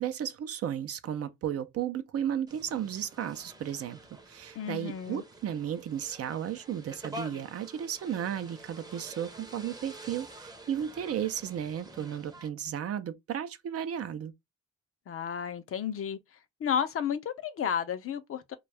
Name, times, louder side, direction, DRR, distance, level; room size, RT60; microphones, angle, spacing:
voice 1, 0.0-4.0 4.3-14.3, right 9 dB, 50° right, 0.5 m, -34 dB
sound 1, 2.5-12.5, right 1 dB, 15° right, 0.7 m, -48 dB
voice 2, 4.6-5.2 15.1-16.2 16.6-18.6, left 8 dB, 50° left, 0.6 m, -32 dB
2.6 x 2.3 x 3.1 m
cardioid pair, 90°, 30 cm